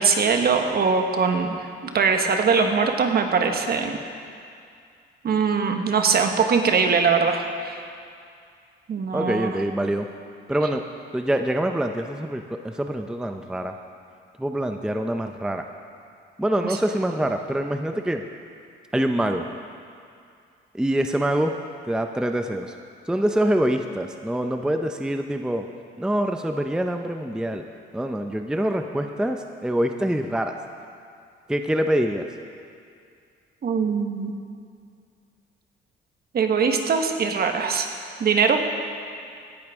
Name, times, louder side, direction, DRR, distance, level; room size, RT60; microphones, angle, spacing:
voice 1, 0.0-1.6 1.9-4.0 5.2-7.8 8.9-9.5 33.6-34.3 36.3-37.9 38.2-38.6, right 5 dB, 50° right, 5 dB, 1.2 m, -21 dB
voice 2, 9.1-10.1 10.5-13.7 14.4-15.6 16.4-18.3 18.9-19.5 20.7-21.6 21.9-22.7 23.1-25.7 26.0-27.6 27.9-30.5 31.5-32.3, right 1 dB, 5° right, 5 dB, 0.6 m, -25 dB
17.0 x 10.5 x 3.6 m, 2.3 s
cardioid pair, 90°, 20 cm